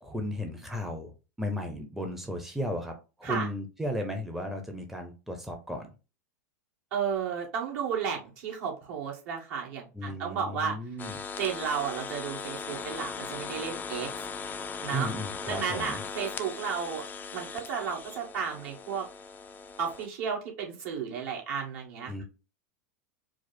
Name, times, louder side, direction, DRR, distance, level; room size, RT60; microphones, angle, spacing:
voice 1, 0.0-1.1 1.4-5.9 9.9-11.2 14.9-16.0 22.1-22.2, equal, 5° right, 4 dB, 0.8 m, -35 dB
voice 2, 6.9-10.8 11.4-14.1 14.8-15.1 15.5-17.0 17.3-19.1 19.8-22.2, right 7 dB, 60° right, -1 dB, 1.8 m, -33 dB
sound 1, 11.0-20.1, left 5 dB, 20° left, 0.5 m, -39 dB
4.8 x 2.1 x 4.3 m, 0.31 s
hypercardioid pair, 100°, 9 cm